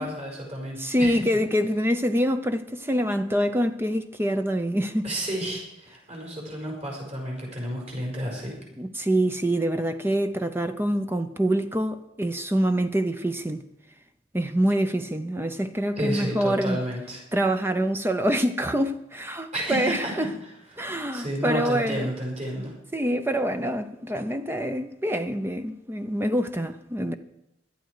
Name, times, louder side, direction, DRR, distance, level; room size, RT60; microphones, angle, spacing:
voice 1, 0.0-1.2 5.0-8.5 16.0-17.2 19.5-20.1 20.8-20.9 21.1-22.7, equal, 40° right, 5.6 m, -31 dB
voice 2, 0.8-5.1 8.8-13.7 14.3-16.8 17.3-20.3 20.8-22.1 22.9-27.2, equal, 15° right, 0.6 m, -25 dB
17.5 x 12.0 x 4.8 m
head